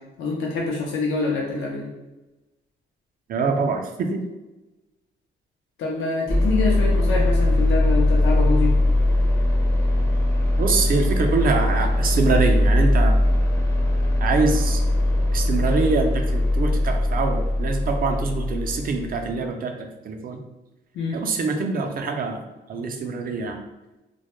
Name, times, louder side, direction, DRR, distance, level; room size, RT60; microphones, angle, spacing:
voice 1, 0.2-1.9 5.8-8.8 20.9-21.2, left 3 dB, 80° left, -2 dB, 0.5 m, -25 dB
voice 2, 3.3-4.2 10.6-13.2 14.2-14.8 15.3-20.4 21.1-22.4 22.7-23.6, right 4 dB, 45° right, 4 dB, 0.4 m, -24 dB
sound 1, 6.3-19.4, left 1 dB, 15° left, 0.5 m, -20 dB
2.2 x 2.0 x 2.9 m, 1.1 s
cardioid pair, 90°, 20 cm